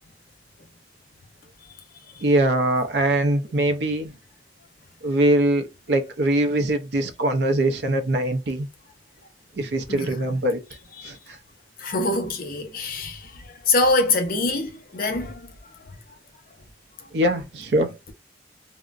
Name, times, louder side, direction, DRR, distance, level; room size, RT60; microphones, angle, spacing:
voice 1, 2.2-4.1 5.0-8.7 9.6-10.6 11.0-11.4 17.1-18.0, right 1 dB, 70° right, 0.5 m, -22 dB
voice 2, 11.8-15.5, left 2 dB, 50° left, 0.6 m, -24 dB
3.6 x 2.0 x 2.4 m
head